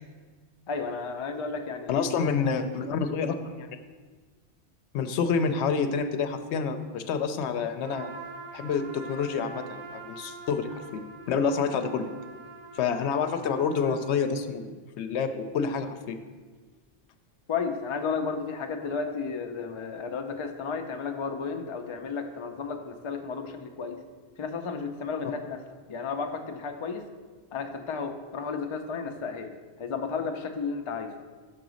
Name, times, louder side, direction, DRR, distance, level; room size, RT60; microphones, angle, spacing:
voice 1, 0.7-2.0 17.5-24.0 24.4-25.6 25.9-27.1 27.5-31.1, left 5 dB, 50° left, 6 dB, 0.3 m, -33 dB
voice 2, 1.9-3.7 4.9-8.1 8.5-11.0 11.3-12.0 12.7-16.2, left 5 dB, 80° left, 9 dB, 0.8 m, -28 dB
Trumpet, 7.8-14.3, right 3 dB, 55° right, 0.7 m, -45 dB
6.2 x 3.9 x 6.2 m, 1.4 s
omnidirectional pair, 1.1 m